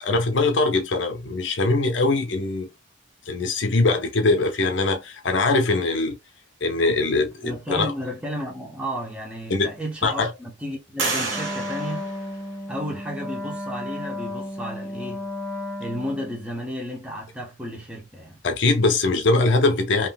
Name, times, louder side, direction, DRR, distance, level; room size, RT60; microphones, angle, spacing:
voice 1, 0.0-2.7 3.3-6.2 6.6-7.9 9.5-9.7 10.0-10.3 18.4-20.1, left 3 dB, 65° left, 0.6 m, -22 dB
voice 2, 7.4-12.1 12.7-15.3 15.8-18.4, equal, 5° right, 0.8 m, -33 dB
sound 1, 8.7-8.8 9.4-10.1 11.0-12.9, right 3 dB, 85° right, 1.3 m, -31 dB
Wind instrument woodwind instrument, 11.3-16.4, left 1 dB, 15° left, 1.0 m, -33 dB
3.6 x 2.7 x 2.2 m
head